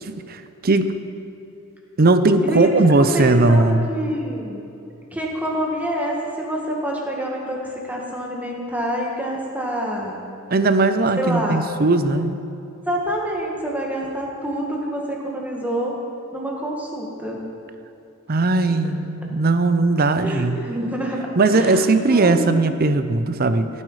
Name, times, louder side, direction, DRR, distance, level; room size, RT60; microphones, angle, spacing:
voice 1, 0.3-0.9 2.0-3.9 10.5-12.4 18.3-20.6 21.4-23.7, right 2 dB, 45° right, 10 dB, 0.6 m, -18 dB
voice 2, 3.1-4.6 5.1-10.2 11.1-11.7 12.9-16.0 16.3-17.4 20.2-21.2 21.5-22.7, equal, 5° right, -2 dB, 1.8 m, -27 dB
16.5 x 9.9 x 4.8 m, 2.8 s
head